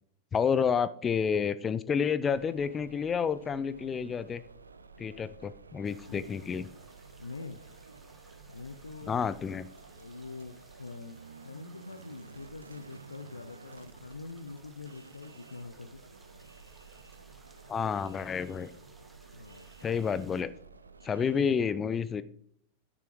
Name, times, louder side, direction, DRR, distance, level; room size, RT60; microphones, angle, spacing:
voice 1, 0.3-4.4 5.0-6.7 9.1-9.7 17.7-18.7 19.8-20.5 21.0-22.2, left 6 dB, 20° left, 15 dB, 0.5 m, -29 dB
sound 1, 2.3-21.6, right 4 dB, 75° right, 0.6 m, -52 dB
sound 2, 5.8-20.4, right 2 dB, 10° right, 1.6 m, -60 dB
voice 2, 7.2-7.6 8.5-9.2 10.0-16.0 19.3-19.7, left 3 dB, 80° left, 12 dB, 0.6 m, -45 dB
12.5 x 10.5 x 3.1 m, 0.67 s
figure-of-eight pair, 90°, 0 cm